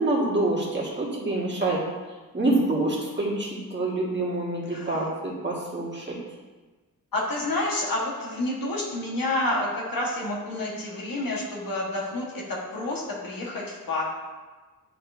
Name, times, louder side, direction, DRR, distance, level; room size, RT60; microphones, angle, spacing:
voice 1, 0.0-1.8 2.3-6.2, right 2 dB, 30° right, -5 dB, 1.6 m, -26 dB
voice 2, 7.1-14.0, left 2 dB, 80° left, -3 dB, 1.4 m, -29 dB
9.7 x 4.0 x 2.6 m, 1.3 s
wide cardioid pair, 115°, 34 cm